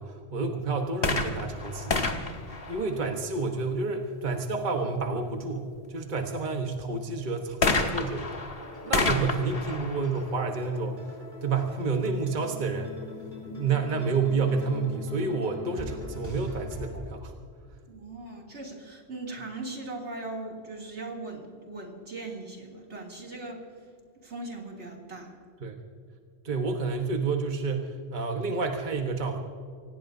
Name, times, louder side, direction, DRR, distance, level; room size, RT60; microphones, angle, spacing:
voice 1, 0.0-2.0 2.7-8.3 8.8-11.1 11.4-12.9 13.5-17.3 25.6-25.8 26.4-29.4, right 4 dB, 45° right, 3 dB, 1.3 m, -29 dB
sound 1, 0.9-3.5 7.6-11.3 12.1-12.2, left 3 dB, 60° left, 1.6 m, -30 dB
sound 2, 8.6-16.9, left 3 dB, 25° right, 5.0 m, -43 dB
voice 2, 13.5-13.8 17.9-23.7 24.2-25.3, right 2 dB, 80° right, -1 dB, 3.1 m, -39 dB
25.5 x 18.0 x 2.7 m, 2.2 s
omnidirectional pair, 1.1 m